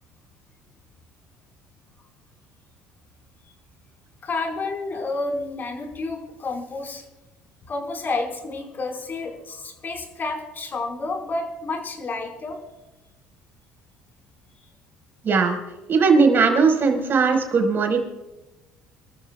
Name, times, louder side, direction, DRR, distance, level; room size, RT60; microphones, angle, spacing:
voice 1, 4.2-7.0 7.6-12.6, left 3 dB, 40° left, 2 dB, 4.5 m, -30 dB
voice 2, 15.2-15.6 15.9-18.0, right 4 dB, 45° right, 4 dB, 4.5 m, -18 dB
27.5 x 13.5 x 2.3 m, 1.0 s
supercardioid pair, 85°, 5 cm